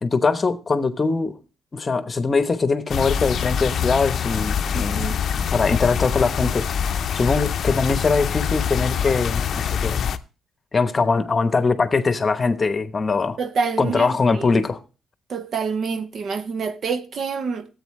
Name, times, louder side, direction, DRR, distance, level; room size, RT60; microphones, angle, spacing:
voice 1, 0.0-1.4 1.7-6.7 7.1-10.1 10.7-13.4 13.8-14.8, left 4 dB, 30° left, 1.0 m, -22 dB
sound 1, 2.9-10.2, left 8 dB, 60° left, 0.6 m, -24 dB
voice 2, 4.7-5.2 13.4-14.5 15.3-17.7, right 5 dB, 55° right, 0.8 m, -27 dB
13.5 x 8.2 x 3.2 m
cardioid pair, 90°, 0 cm